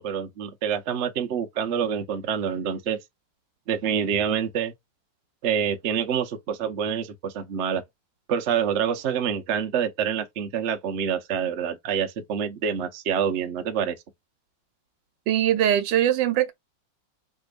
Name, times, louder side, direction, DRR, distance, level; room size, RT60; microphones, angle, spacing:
voice 1, 0.0-3.0 3.7-4.7 5.4-7.8 8.3-14.0, right 7 dB, 60° right, 0.7 m, -27 dB
voice 2, 15.3-16.5, right 11 dB, 80° right, 1.3 m, -21 dB
3.3 x 3.1 x 2.3 m
omnidirectional pair, 2.0 m